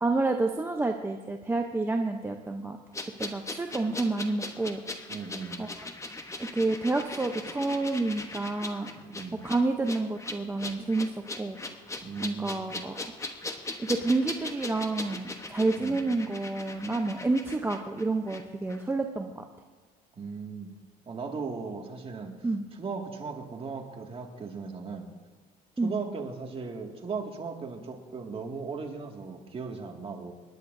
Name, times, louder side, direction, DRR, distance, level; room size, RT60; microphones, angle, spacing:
voice 1, 0.0-2.8 3.2-4.8 5.6-5.9 6.4-8.9 9.4-11.1 11.4-11.6 12.2-13.1 13.8-19.4 22.4-22.6 25.8-26.0, right 2 dB, 15° right, 3 dB, 0.7 m, -29 dB
sound 1, 2.9-18.4 18.7-18.8, left 2 dB, 15° left, 1.0 m, -39 dB
voice 2, 5.1-5.7 8.9-9.4 12.0-12.9 15.8-16.0 20.2-20.7 21.1-22.4 22.8-25.1 25.8-30.3, right 4 dB, 35° right, 1 dB, 2.1 m, -37 dB
27.0 x 10.5 x 2.7 m, 1.4 s
cardioid pair, 110°, 17 cm